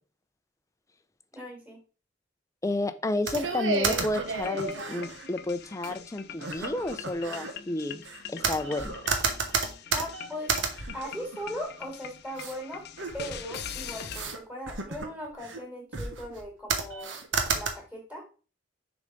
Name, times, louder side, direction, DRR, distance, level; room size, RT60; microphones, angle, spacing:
voice 1, 1.3-1.8 9.9-10.5 10.9-12.8 13.1-17.1 17.5-18.2, equal, 10° right, -1 dB, 3.2 m, -39 dB
voice 2, 2.6-8.0 8.3-9.0, left 2 dB, 15° left, 11 dB, 0.5 m, -31 dB
sound 1, 3.3-5.3 5.8-5.9 6.4-7.5 8.0-11.8 12.4-12.6 13.0-13.6 14.1-14.4 14.7-15.6 15.9-16.4 16.7-17.7, right 4 dB, 75° right, 1.2 m, -31 dB
sound 2, 4.2-14.2, left 8 dB, 55° left, 0.6 m, -43 dB
6.7 x 4.0 x 5.1 m, 0.36 s
head